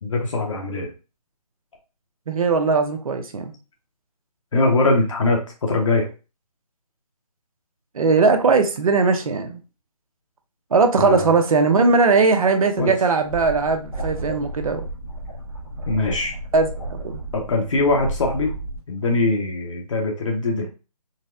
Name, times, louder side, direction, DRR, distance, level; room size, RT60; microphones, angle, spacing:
voice 1, 0.0-0.9 4.5-6.1 11.0-11.3 12.8-12.9 15.9-16.3 17.3-18.5 18.9-20.7, left 2 dB, 50° left, 0.8 m, -22 dB
voice 2, 2.3-3.5 7.9-9.6 10.7-14.8 16.5-17.2, right 4 dB, 60° right, 0.6 m, -19 dB
sound 1, 13.2-18.8, right 1 dB, 5° right, 0.4 m, -32 dB
4.0 x 2.0 x 2.5 m
figure-of-eight pair, 155°, 21 cm